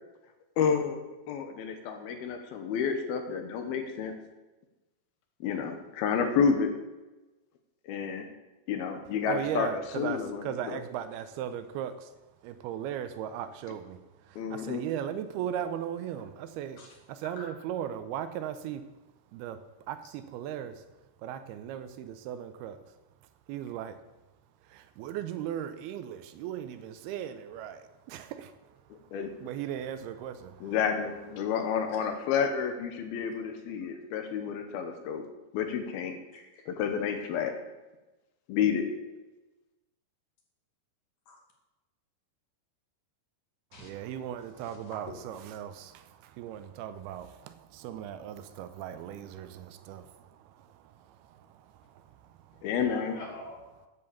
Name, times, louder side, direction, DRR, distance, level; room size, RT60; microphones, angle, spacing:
voice 1, 0.6-1.0 1.3-4.1 5.4-6.7 7.9-8.3 8.7-9.7 10.0-10.8 14.4-14.9 29.1-29.3 30.6-35.2 35.5-36.2 36.7-37.5 38.5-38.9 52.6-53.2, left 7 dB, 75° left, 6 dB, 2.8 m, -30 dB
voice 2, 9.3-12.1 12.4-14.0 14.2-16.8 17.1-18.8 19.3-20.8 21.2-22.8 23.5-24.0 24.7-28.5 29.4-30.7 43.7-52.7, right 10 dB, 80° right, 11 dB, 2.6 m, -38 dB
voice 3, 36.3-36.6 41.3-41.4 43.7-43.9 44.6-45.0 52.8-53.9, left 2 dB, 55° left, 0 dB, 3.4 m, -46 dB
9.9 x 7.7 x 7.1 m, 1.1 s
omnidirectional pair, 4.6 m